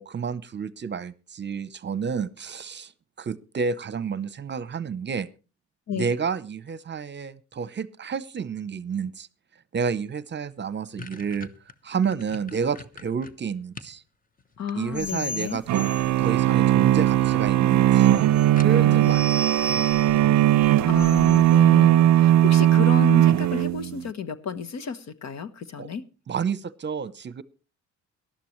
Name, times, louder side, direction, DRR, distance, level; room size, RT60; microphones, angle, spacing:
voice 1, 0.0-2.9 3.2-5.3 5.9-9.3 9.7-11.5 11.8-14.0 14.7-15.8 16.2-18.1 18.6-20.2 25.8-25.9 26.3-27.4, right 6 dB, 35° right, 0.8 m, -30 dB
sound 1, 10.1-10.2 10.5-14.0 14.4-15.3 16.4-16.8 17.1-17.2 17.5-17.6 17.9-18.0 18.6-19.1, left 4 dB, 30° left, 1.1 m, -43 dB
voice 2, 14.6-15.6 18.7-19.1 20.9-26.0, left 6 dB, 60° left, 1.3 m, -32 dB
sound 2, 14.9-21.6, right 1 dB, 5° right, 0.6 m, -36 dB
sound 3, 15.7-24.0, right 13 dB, 65° right, 0.5 m, -18 dB
18.5 x 12.0 x 3.2 m
cardioid pair, 90°, 30 cm